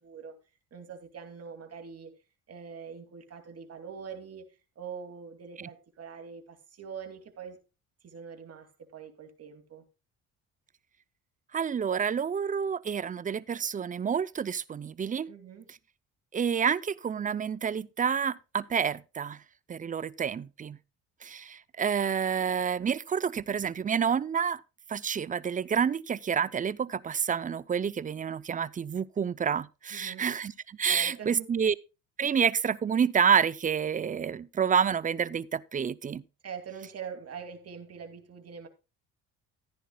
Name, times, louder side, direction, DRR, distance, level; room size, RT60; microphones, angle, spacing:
voice 1, 0.0-0.4 0.7-2.1 2.5-4.5 4.8-7.6 8.0-9.8 15.3-15.7 29.9-30.3 30.9-31.5 36.4-38.7, right 6 dB, 45° right, 2.6 m, -43 dB
voice 2, 11.5-15.3 16.3-19.4 19.7-20.8 21.2-24.6 24.9-31.7 32.2-36.2, right 7 dB, 25° right, 0.5 m, -28 dB
14.0 x 10.0 x 2.3 m
supercardioid pair, 75°, 34 cm